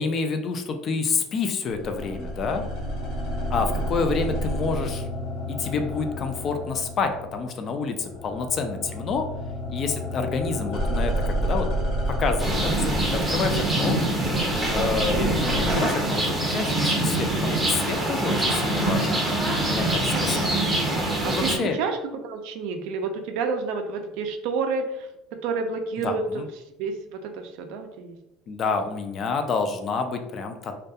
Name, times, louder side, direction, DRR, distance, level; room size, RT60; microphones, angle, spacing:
voice 1, 0.0-2.7 3.5-5.1 5.5-9.3 9.7-11.7 12.1-14.0 14.7-19.2 19.7-20.5 21.2-21.8 26.0-26.5 28.5-30.7, left 4 dB, 35° left, 6 dB, 0.3 m, -28 dB
sound 1, 1.7-7.6 7.9-15.8, equal, 60° left, 1.1 m, -30 dB
voice 2, 3.6-3.9 10.4-10.7 14.9-15.3 20.1-20.7 20.9-25.1 25.4-26.4 26.8-28.2, right 4 dB, 70° right, 6 dB, 0.3 m, -30 dB
sound 2, 12.4-21.6, right 1 dB, 10° right, 0.6 m, -24 dB
2.3 x 2.2 x 2.6 m, 0.89 s
cardioid pair, 135°, 0 cm